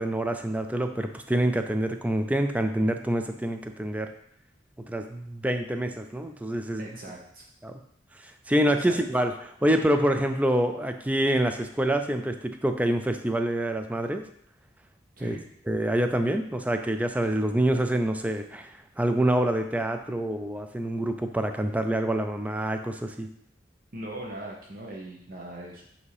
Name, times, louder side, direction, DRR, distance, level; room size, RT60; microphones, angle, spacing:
voice 1, 0.0-4.1 4.9-6.9 7.6-7.8 8.2-14.2 15.2-15.4 15.7-23.3, right 1 dB, 10° right, 7 dB, 0.4 m, -26 dB
voice 2, 6.8-7.5 8.7-9.0 15.2-15.4 23.9-25.8, right 1 dB, 50° right, -3 dB, 0.9 m, -40 dB
8.2 x 2.8 x 4.8 m, 0.71 s
head